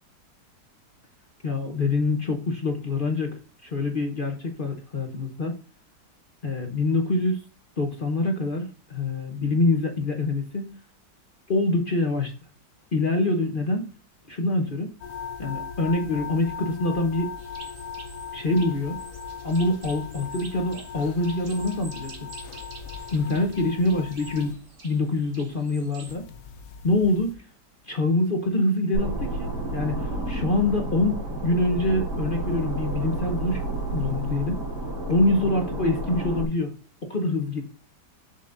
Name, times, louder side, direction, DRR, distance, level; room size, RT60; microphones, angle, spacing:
voice 1, 1.4-5.5 6.4-7.4 7.8-10.8 11.5-12.3 12.9-13.9 14.3-14.9 15.4-17.3 18.3-19.0 19.4-22.2 23.1-24.5 24.8-26.3 26.8-27.4 27.9-33.6 33.9-34.6 35.1-36.7 37.0-37.6, left 2 dB, 35° left, 3 dB, 1.0 m, -25 dB
sound 1, 15.0-24.5 26.1-27.4, left 6 dB, 65° left, 0.9 m, -38 dB
sound 2, 17.4-26.1, right 3 dB, 45° right, 1.9 m, -48 dB
sound 3, 28.9-36.5, right 1 dB, 65° right, 4.9 m, -30 dB
7.2 x 7.0 x 2.6 m, 0.36 s
omnidirectional pair, 1.9 m